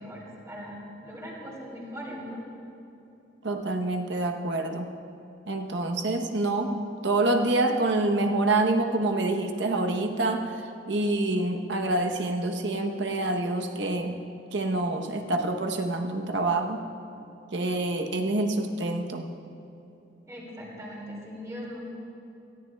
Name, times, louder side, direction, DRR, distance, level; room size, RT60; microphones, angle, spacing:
voice 1, 0.0-2.4 20.3-21.8, equal, 20° right, -4 dB, 2.5 m, -40 dB
voice 2, 3.4-4.9 5.5-10.5 10.9-14.2 14.5-16.8 17.5-19.3, right 2 dB, 75° right, 4 dB, 0.8 m, -27 dB
17.5 x 14.0 x 2.2 m, 2.9 s
head